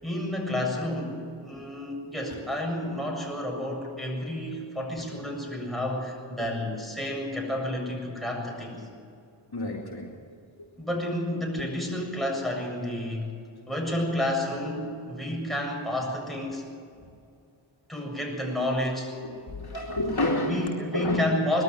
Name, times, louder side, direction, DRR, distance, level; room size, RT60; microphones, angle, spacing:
voice 1, 0.0-8.9 10.8-13.4 13.7-16.6 17.9-19.1 20.5-21.6, left 1 dB, ahead, 0 dB, 7.4 m, -30 dB
voice 2, 9.5-10.1 11.6-11.7 17.9-18.0 19.3-21.2, left 1 dB, 50° left, -1 dB, 3.0 m, -29 dB
21.0 x 13.5 x 9.5 m, 2.4 s
cardioid pair, 45°, 48 cm